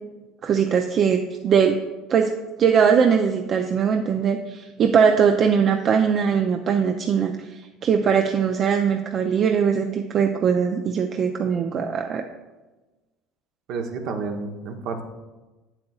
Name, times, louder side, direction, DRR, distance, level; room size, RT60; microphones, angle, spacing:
voice 1, 0.4-1.8 2.1-2.3 2.6-12.2, right 7 dB, 45° right, 5 dB, 0.5 m, -21 dB
voice 2, 13.7-15.0, right 4 dB, 60° right, 4 dB, 0.9 m, -30 dB
8.6 x 7.6 x 2.4 m, 1.2 s
hypercardioid pair, 75°, 0 cm